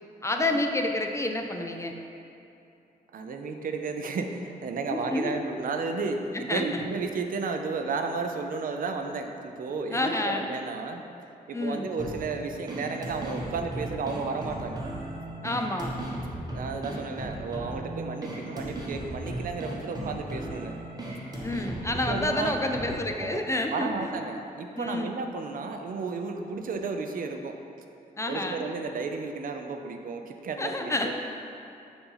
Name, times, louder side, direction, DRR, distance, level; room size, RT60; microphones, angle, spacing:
voice 1, 0.2-1.9 4.9-5.4 6.3-6.8 9.9-10.5 11.5-11.9 15.4-15.9 21.4-24.2 24.8-25.2 28.2-28.7 30.6-31.1, left 2 dB, 20° left, 3 dB, 0.4 m, -29 dB
voice 2, 3.1-11.0 11.5-14.8 16.5-20.8 22.1-22.6 23.2-23.4 23.7-27.6 28.3-31.1, right 4 dB, 60° right, 5 dB, 0.5 m, -33 dB
sound 1, 12.0-23.0, right 1 dB, 25° right, 0.9 m, -36 dB
7.0 x 2.6 x 5.6 m, 2.7 s
wide cardioid pair, 120°, 16 cm